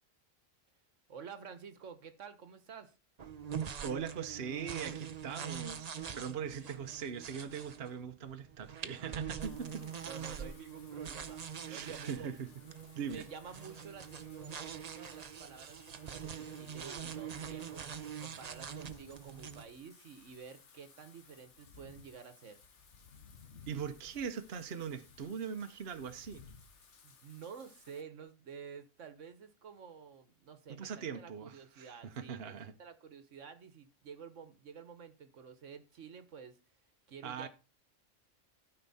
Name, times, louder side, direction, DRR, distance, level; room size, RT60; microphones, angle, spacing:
voice 1, 1.1-2.9 9.7-12.3 13.1-17.9 18.2-22.6 27.0-36.6 37.1-37.5, right 6 dB, 75° right, 1.5 m, -50 dB
sound 1, 3.2-19.6, right 7 dB, 40° right, 0.7 m, -44 dB
voice 2, 3.8-9.8 11.7-12.5 12.9-13.2 23.7-26.4 30.7-32.7 37.2-37.5, right 7 dB, 55° right, 1.1 m, -41 dB
Wind / Rain, 9.4-28.0, left 5 dB, 70° left, 1.6 m, -60 dB
13.0 x 5.6 x 4.1 m
omnidirectional pair, 1.3 m